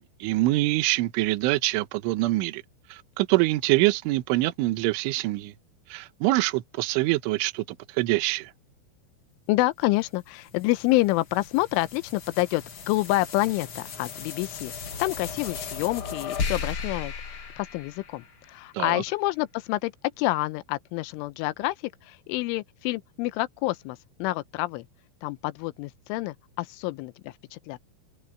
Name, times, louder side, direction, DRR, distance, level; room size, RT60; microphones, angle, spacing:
voice 1, 0.2-2.6 2.9-5.5 5.9-8.5 18.7-19.0, right 19 dB, 80° right, 3.4 m, -25 dB
voice 2, 9.5-19.9 20.2-24.9 25.2-27.8, left 19 dB, 85° left, 3.1 m, -28 dB
sound 1, 10.0-18.6, left 5 dB, 65° left, 1.3 m, -36 dB
omnidirectional pair, 5.6 m